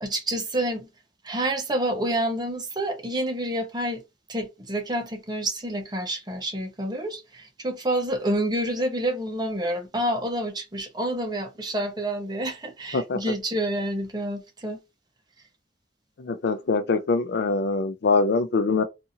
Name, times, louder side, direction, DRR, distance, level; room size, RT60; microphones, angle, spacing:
voice 1, 0.0-0.9 1.2-4.0 4.3-14.8, right 1 dB, 25° right, 0.7 m, -28 dB
voice 2, 16.2-18.8, left 4 dB, 65° left, 0.4 m, -23 dB
2.7 x 2.5 x 2.7 m
head